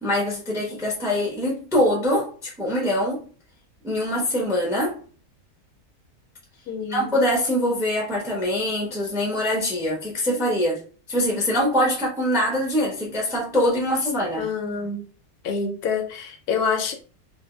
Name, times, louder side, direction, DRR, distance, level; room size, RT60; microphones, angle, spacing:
voice 1, 0.0-3.2 3.8-5.0 6.9-10.8 11.1-14.5, left 1 dB, 5° right, 0.5 m, -23 dB
voice 2, 6.7-7.1 14.4-15.0 15.4-16.9, left 5 dB, 80° left, 1.1 m, -27 dB
2.6 x 2.1 x 3.0 m
omnidirectional pair, 1.6 m